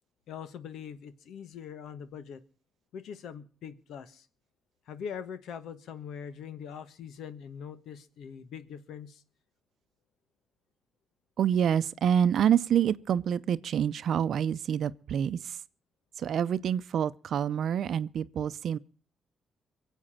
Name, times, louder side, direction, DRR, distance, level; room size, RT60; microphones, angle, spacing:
voice 1, 0.3-2.4 2.9-4.3 4.9-9.2, left 7 dB, 75° left, 1.3 m, -42 dB
voice 2, 11.4-15.6 16.2-18.8, right 9 dB, 65° right, 0.7 m, -27 dB
23.0 x 8.2 x 5.7 m
cardioid pair, 90°, 0 cm